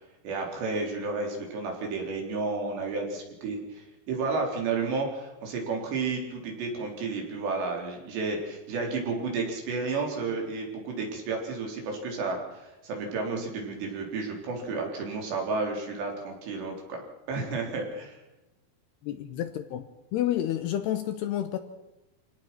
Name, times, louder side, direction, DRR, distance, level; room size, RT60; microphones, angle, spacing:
voice 1, 0.2-17.0 17.3-18.2, right 4 dB, 65° right, 1 dB, 5.9 m, -32 dB
voice 2, 19.0-19.8 20.1-21.6, left 12 dB, 75° left, 9 dB, 2.7 m, -29 dB
27.0 x 18.0 x 6.1 m, 1.0 s
omnidirectional pair, 5.4 m